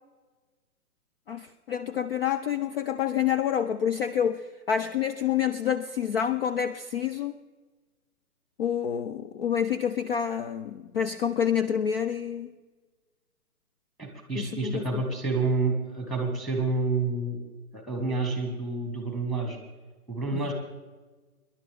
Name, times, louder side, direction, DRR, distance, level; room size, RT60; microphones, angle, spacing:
voice 1, 1.3-7.4 8.6-12.5 14.4-15.0 20.3-20.4, left 8 dB, 40° left, 10 dB, 0.5 m, -28 dB
voice 2, 14.0-17.4 17.7-19.6 20.1-20.5, right 3 dB, ahead, 3 dB, 1.7 m, -29 dB
24.5 x 11.0 x 3.6 m, 1.3 s
hypercardioid pair, 145°, 45 cm